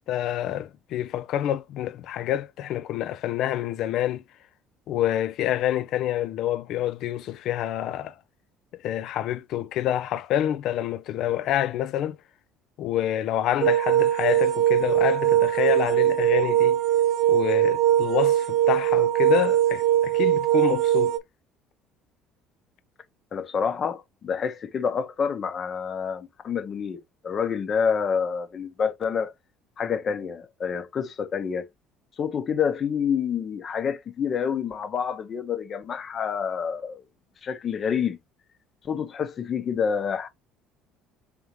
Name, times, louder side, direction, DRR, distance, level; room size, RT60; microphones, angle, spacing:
voice 1, 0.1-4.2 4.9-8.1 8.8-12.2 12.8-16.8 17.3-21.1, left 12 dB, 65° left, 0.4 m, -27 dB
sound 1, 13.6-21.2, right 12 dB, 60° right, 0.5 m, -21 dB
voice 2, 23.3-29.3 29.8-31.7 32.2-37.0 37.4-38.2 38.8-40.3, left 7 dB, 45° left, 0.8 m, -28 dB
3.7 x 3.4 x 3.0 m
hypercardioid pair, 65°, 0 cm